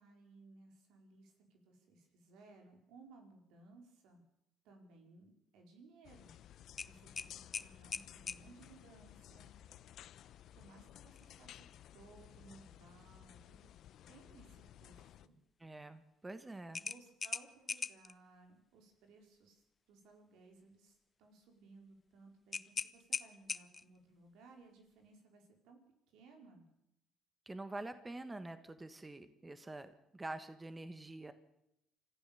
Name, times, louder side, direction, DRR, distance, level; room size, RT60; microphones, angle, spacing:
voice 1, 0.0-4.2 4.6-6.3 6.9-9.5 10.5-11.6 11.9-13.7 14.1-15.4 16.7-19.6 19.9-25.8 26.1-26.7, right 3 dB, 80° right, 3 dB, 4.6 m, -61 dB
sound 1, 6.0-15.3, left 11 dB, 65° left, 0.8 m, -57 dB
sound 2, 6.8-8.4 11.1-11.3 11.7-11.8 16.7-18.1 22.5-24.0, left 5 dB, 35° left, 0.8 m, -41 dB
voice 2, 15.6-16.8 27.4-31.3, right 2 dB, 20° right, 10 dB, 1.5 m, -46 dB
26.0 x 14.5 x 7.0 m, 0.82 s
supercardioid pair, 75°, 0 cm